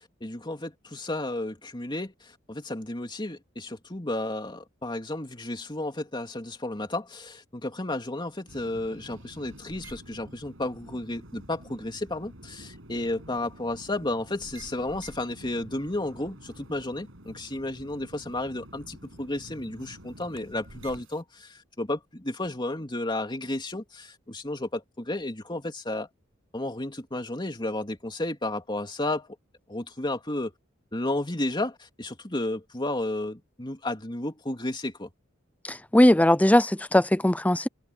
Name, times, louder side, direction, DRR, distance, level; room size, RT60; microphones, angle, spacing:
voice 1, 0.2-26.1 26.5-29.4 29.7-30.5 30.9-35.1, left 2 dB, 25° left, 3.1 m, -32 dB
sound 1, 8.5-21.2, right 1 dB, 80° right, 7.3 m, -48 dB
voice 2, 35.7-37.7, left 1 dB, 10° left, 0.6 m, -20 dB
head